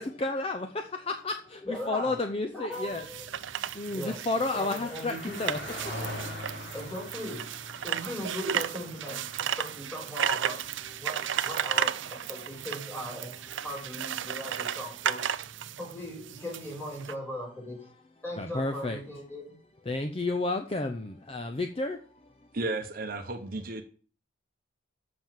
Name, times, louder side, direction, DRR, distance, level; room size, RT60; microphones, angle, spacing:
voice 1, 0.0-3.1 3.5-6.7 12.3-12.5 18.4-19.0 19.9-22.3, left 2 dB, 30° left, 0.6 m, -32 dB
voice 2, 1.6-2.1 2.5-3.3 3.9-4.2 4.5-5.4 6.7-7.5 7.8-9.2 9.6-10.6 11.0-13.4 13.6-15.2 15.8-17.9 18.2-19.6, equal, 10° left, 4.7 m, -38 dB
sound 1, 2.7-17.1, right 9 dB, 70° right, 0.5 m, -34 dB
Car passing by, 3.1-14.6, left 1 dB, 55° left, 3.8 m, -45 dB
voice 3, 22.5-23.8, right 2 dB, 45° right, 0.8 m, -33 dB
7.6 x 6.0 x 7.4 m
head